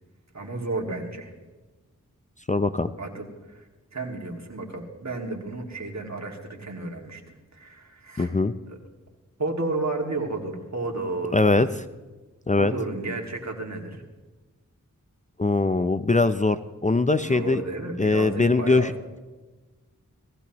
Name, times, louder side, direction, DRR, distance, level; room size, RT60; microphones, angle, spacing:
voice 1, 0.3-1.3 3.0-8.3 8.7-8.8 9.4-11.7 12.6-14.0 17.2-18.9, right 2 dB, 55° right, 2 dB, 2.3 m, -32 dB
voice 2, 2.5-2.9 8.2-8.5 11.3-11.7 12.5-12.7 15.4-16.6 16.8-17.6 18.0-18.9, left 3 dB, 25° left, 11 dB, 0.5 m, -21 dB
18.0 x 15.5 x 3.0 m, 1.2 s
wide cardioid pair, 50°, 33 cm